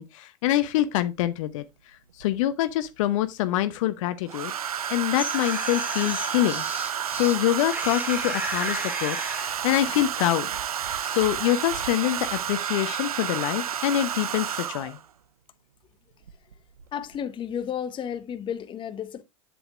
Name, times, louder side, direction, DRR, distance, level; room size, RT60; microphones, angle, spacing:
voice 1, 0.0-1.6 2.2-4.5 4.9-6.7 7.1-10.5 11.0-15.0, left 13 dB, 60° left, 0.8 m, -25 dB
Domestic sounds home sounds, 0.7-0.8 2.2-2.9 4.3-15.0 16.3-16.5 16.8-17.2, right 9 dB, 85° right, 0.5 m, -31 dB
sound 1, 4.9-7.4 7.7-9.5, equal, 10° right, 2.5 m, -34 dB
voice 2, 16.9-19.2, left 8 dB, 25° left, 0.8 m, -32 dB
8.0 x 7.8 x 2.4 m
hypercardioid pair, 90°, 18 cm